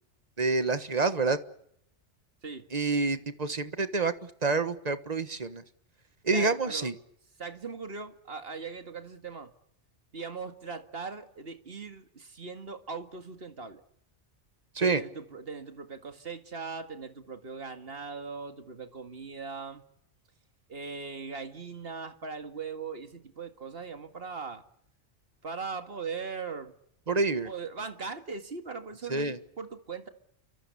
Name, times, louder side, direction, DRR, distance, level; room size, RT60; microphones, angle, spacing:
voice 1, 0.4-1.4 2.7-5.6 6.2-6.9 14.7-15.0 27.1-27.5 29.1-29.4, right 3 dB, 35° right, 11 dB, 1.5 m, -27 dB
voice 2, 6.3-6.9 7.4-9.5 10.1-13.8 14.8-19.8 20.7-24.6 25.4-26.7 27.4-30.1, right 5 dB, 55° right, 7 dB, 2.2 m, -39 dB
29.0 x 24.5 x 7.0 m, 0.73 s
omnidirectional pair, 1.2 m